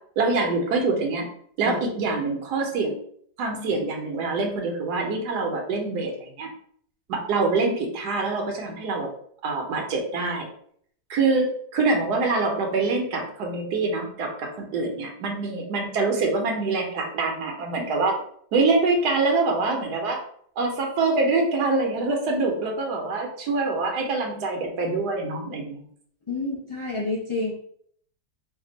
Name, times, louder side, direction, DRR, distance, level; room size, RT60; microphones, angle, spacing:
voice 1, 0.2-1.2 1.6-2.9 3.4-6.5 7.1-9.1 9.4-10.5 11.1-18.1 18.5-20.2 20.6-25.8, right 3 dB, 75° right, 2 dB, 1.3 m, -25 dB
voice 2, 26.3-27.5, left 2 dB, 45° left, -6 dB, 0.3 m, -29 dB
3.3 x 2.2 x 3.8 m, 0.62 s
omnidirectional pair, 1.8 m